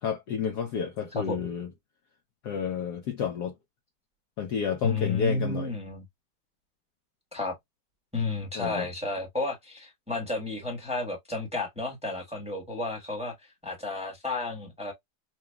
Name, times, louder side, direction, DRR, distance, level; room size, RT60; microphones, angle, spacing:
voice 1, 0.0-1.7 2.4-3.5 4.4-5.7 8.5-8.9, left 7 dB, 65° left, 1.0 m, -30 dB
voice 2, 1.1-1.5 4.8-6.0 7.3-7.5 8.1-13.3 13.6-14.9, left 3 dB, 5° right, 1.1 m, -32 dB
5.9 x 2.3 x 2.2 m
omnidirectional pair, 2.2 m